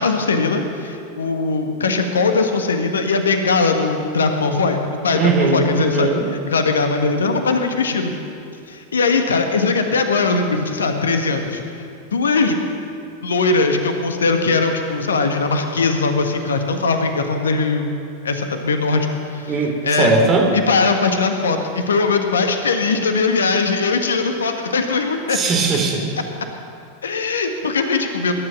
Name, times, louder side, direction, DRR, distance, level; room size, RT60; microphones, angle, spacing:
voice 1, 0.0-8.1 8.7-11.6 12.1-12.5 13.2-17.9 18.2-19.1 19.3-20.1 20.5-25.4 27.0-28.3, left 4 dB, 70° left, 5 dB, 1.5 m, -20 dB
voice 2, 5.1-6.3 19.5-20.5 25.3-26.0, right 4 dB, 30° right, 1 dB, 3.3 m, -19 dB
20.5 x 10.5 x 6.1 m, 2.6 s
figure-of-eight pair, 90°, 0 cm